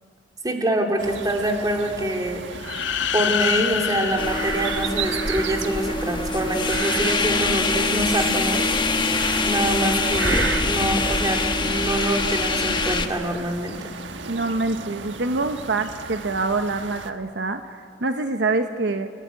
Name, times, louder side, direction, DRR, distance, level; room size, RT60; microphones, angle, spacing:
voice 1, 0.4-2.4 3.1-8.7 9.4-13.9, right 1 dB, 20° right, 2 dB, 2.9 m, -25 dB
sound 1, 1.0-17.1, right 5 dB, 80° right, 1.4 m, -34 dB
sound 2, 2.6-5.5, left 10 dB, 75° left, 0.6 m, -27 dB
sound 3, 4.2-13.1, left 3 dB, 25° left, 1.3 m, -24 dB
voice 2, 14.3-19.1, right 3 dB, 65° right, 7 dB, 1.0 m, -25 dB
29.5 x 17.0 x 9.2 m, 2.1 s
head